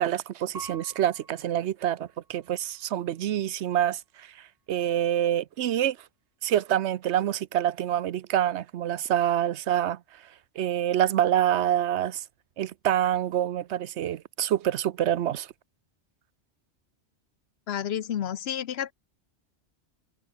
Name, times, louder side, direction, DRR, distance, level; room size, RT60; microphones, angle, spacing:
voice 1, 0.0-4.3 4.7-6.0 6.4-10.0 10.6-12.2 12.6-15.5, right 11 dB, 80° right, 1.0 m, -26 dB
Piano, 0.5-3.3 3.9-4.6, right 4 dB, 60° right, 2.4 m, -49 dB
voice 2, 17.7-18.9, left 9 dB, 70° left, 1.0 m, -30 dB
omnidirectional pair, 1.1 m